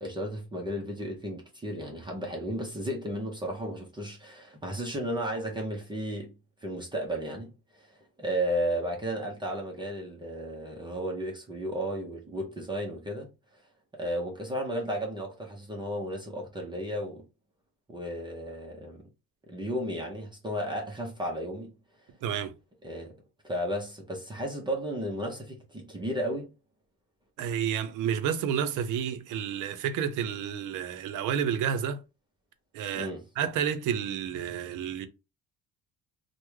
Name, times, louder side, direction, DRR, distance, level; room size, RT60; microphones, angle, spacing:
voice 1, 0.0-6.3 6.6-13.3 13.9-17.2 17.9-19.0 19.5-21.7 22.8-23.1 23.4-26.5 32.9-33.2, equal, 15° right, 0.5 m, -34 dB
voice 2, 22.2-22.5 27.4-32.0 32.7-33.1 33.4-35.1, right 8 dB, 65° right, 0.6 m, -30 dB
3.4 x 2.1 x 3.1 m
cardioid pair, 165°, 33 cm